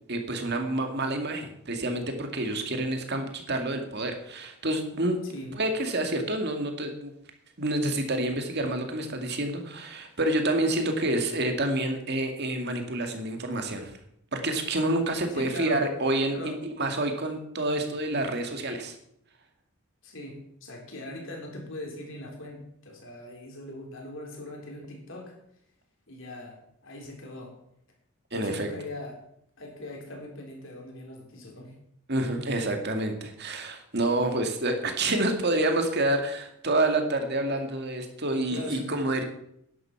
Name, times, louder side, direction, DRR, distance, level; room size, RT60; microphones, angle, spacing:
voice 1, 0.1-5.2 5.5-7.1 7.6-13.9 14.3-19.0 28.3-28.7 32.1-39.2, right 1 dB, 45° right, 5 dB, 2.2 m, -28 dB
voice 2, 5.2-5.5 15.3-15.9 16.3-16.6 20.0-25.4 26.1-27.6 28.3-29.2 29.6-31.7 38.5-39.0, left 1 dB, 55° left, 1 dB, 4.0 m, -41 dB
11.0 x 11.0 x 6.0 m, 0.74 s
head